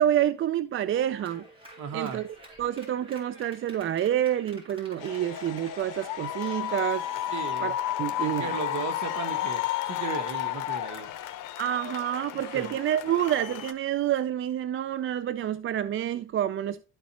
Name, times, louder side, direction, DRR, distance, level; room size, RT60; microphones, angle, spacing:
voice 1, 0.0-1.4 1.9-2.2 2.6-7.1 7.6-8.5 11.6-16.8, right 11 dB, 40° right, 0.4 m, -28 dB
Clapping, 0.9-7.5, right 1 dB, 15° right, 3.6 m, -50 dB
voice 2, 1.8-2.2 7.3-7.7 8.2-11.1 12.3-12.7, right 7 dB, 60° right, 1.5 m, -36 dB
sound 1, 5.0-13.7, left 12 dB, 70° left, 1.0 m, -32 dB
12.5 x 4.3 x 2.9 m
supercardioid pair, 90°, 32 cm